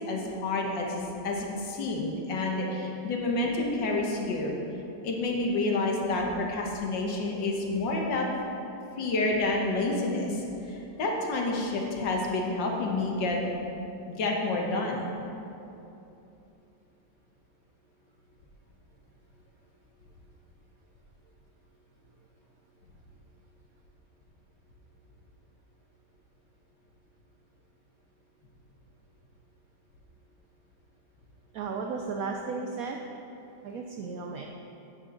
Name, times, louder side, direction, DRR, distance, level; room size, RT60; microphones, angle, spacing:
voice 1, 0.0-4.6 5.0-8.3 9.0-13.4 14.1-15.0, left 2 dB, 90° left, 0 dB, 1.9 m, -29 dB
voice 2, 31.5-33.0 33.6-34.5, right 4 dB, 70° right, 2 dB, 0.9 m, -34 dB
9.5 x 8.3 x 3.9 m, 2.9 s
omnidirectional pair, 1.9 m